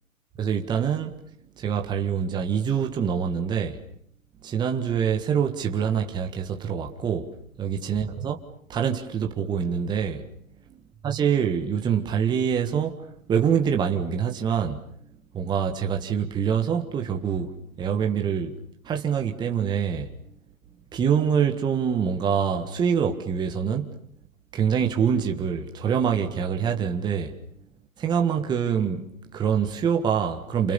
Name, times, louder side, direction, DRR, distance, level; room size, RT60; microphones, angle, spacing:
voice 1, 0.4-1.2 1.6-3.8 4.4-8.4 8.7-10.2 11.0-14.8 15.3-17.5 17.8-18.6 18.8-20.1 20.9-23.9 24.5-27.3 28.0-30.7, right 7 dB, 10° right, 1.6 m, -25 dB
29.0 x 29.0 x 7.0 m
hypercardioid pair, 135°, 41 cm